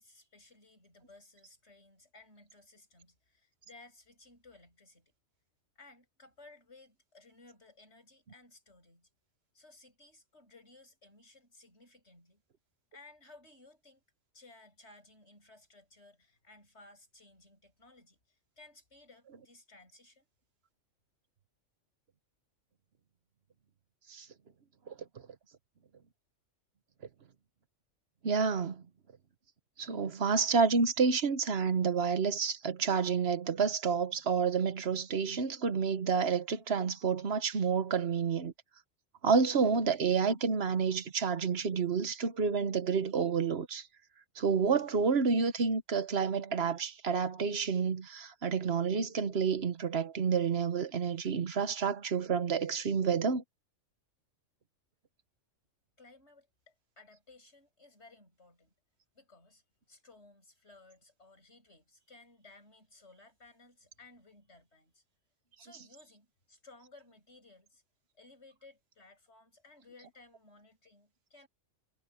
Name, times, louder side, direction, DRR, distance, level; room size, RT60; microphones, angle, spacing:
voice 1, 0.0-5.1 5.8-9.1 9.5-12.4 12.9-14.0 14.3-20.3 56.0-58.7 59.1-65.0 65.6-67.8 68.1-71.5, left 3 dB, 60° left, 7.9 m, -58 dB
voice 2, 28.2-28.8 29.8-38.5 39.2-43.9 44.4-53.4, right 5 dB, 55° right, 1.3 m, -29 dB
omnidirectional pair, 1.3 m